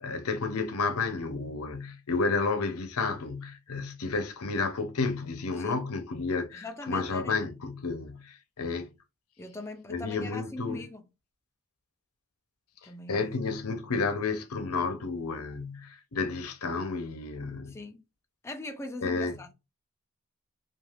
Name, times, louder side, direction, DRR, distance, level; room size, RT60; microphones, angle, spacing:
voice 1, 0.0-8.9 9.9-10.8 13.1-17.8 19.0-19.4, left 4 dB, 80° left, 0.7 m, -31 dB
voice 2, 5.6-5.9 6.5-7.4 9.4-11.0 12.8-13.4 13.9-14.0 17.7-18.0 18.4-19.5, left 2 dB, 10° left, 0.3 m, -41 dB
3.2 x 2.5 x 2.3 m
head